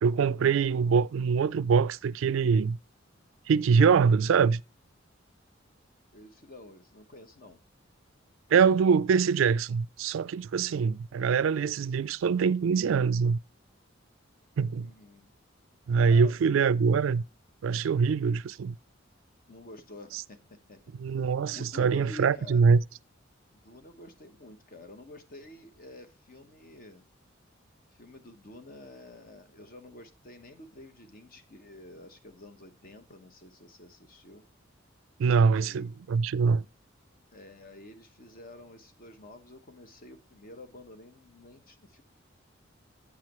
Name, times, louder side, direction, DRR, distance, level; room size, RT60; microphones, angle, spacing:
voice 1, 0.0-2.8 3.5-4.6 8.5-13.4 14.6-14.9 15.9-17.2 17.6-18.7 21.0-22.8 35.2-36.6, right 5 dB, 85° right, 0.3 m, -24 dB
voice 2, 6.1-7.6 14.7-15.3 16.0-16.8 19.5-20.8 21.5-22.8 23.5-27.0 28.0-34.4 35.3-35.9 37.3-42.0, left 1 dB, 45° left, 1.1 m, -49 dB
8.3 x 7.5 x 3.0 m
head